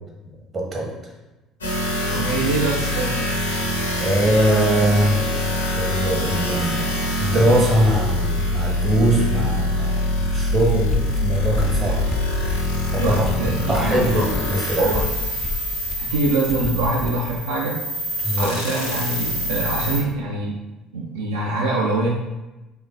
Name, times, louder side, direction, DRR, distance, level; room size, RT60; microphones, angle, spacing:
voice 1, 0.5-0.9 4.0-5.2 5.8-6.8 7.2-10.0 10.3-12.0 12.9-13.2 13.7-14.9 18.2-18.5, right 1 dB, 35° right, -1 dB, 0.9 m, -21 dB
sound 1, 1.6-20.0, left 1 dB, 80° left, 0.5 m, -25 dB
voice 2, 2.1-3.2 13.0-14.3 14.8-15.1 16.0-17.8 18.4-20.5 20.9-22.1, right 2 dB, 75° right, -3 dB, 0.3 m, -24 dB
sound 2, 10.2-17.2, left 3 dB, 25° left, 0.3 m, -30 dB
3.6 x 3.1 x 2.6 m, 1.0 s
figure-of-eight pair, 55°, 0 cm